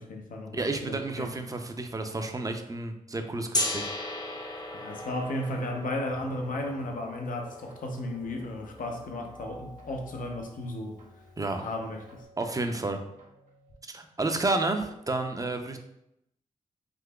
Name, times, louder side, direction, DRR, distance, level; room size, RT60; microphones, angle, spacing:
voice 1, 0.0-1.3 4.7-11.0 11.6-12.3, left 1 dB, 70° left, 3 dB, 0.6 m, -34 dB
voice 2, 0.5-4.2 11.4-11.6 12.4-13.0 13.9-15.8, right 2 dB, 25° right, 6 dB, 0.5 m, -31 dB
Gong, 3.5-9.4, left 1 dB, 30° left, 0.6 m, -37 dB
sound 1, 4.9-13.7, equal, 60° right, 1.1 m, -52 dB
3.7 x 2.8 x 2.2 m, 0.82 s
supercardioid pair, 40°, 14 cm